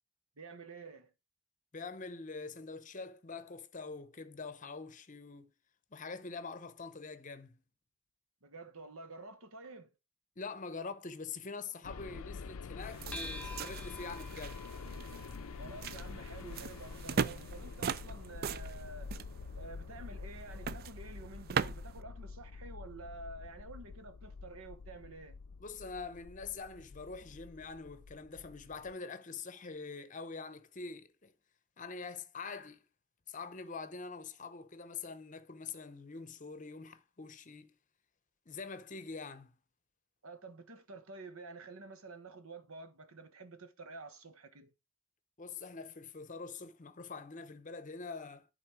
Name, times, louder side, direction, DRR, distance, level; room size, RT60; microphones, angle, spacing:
voice 1, 0.4-1.1 8.4-9.9 15.6-19.1 19.6-25.4 40.2-44.7, right 3 dB, 80° right, 1.2 m, -49 dB
voice 2, 1.7-5.5 5.9-7.6 10.4-14.7 25.6-31.3 31.8-32.8 33.3-37.7 38.5-39.5 45.4-48.5, left 4 dB, 35° left, 0.7 m, -45 dB
sound 1, 11.8-28.9, left 4 dB, 85° left, 0.5 m, -47 dB
sound 2, 12.8-22.0, right 6 dB, 45° right, 0.4 m, -40 dB
sound 3, 13.1-17.9, left 1 dB, 5° left, 1.0 m, -50 dB
11.0 x 4.1 x 4.9 m
head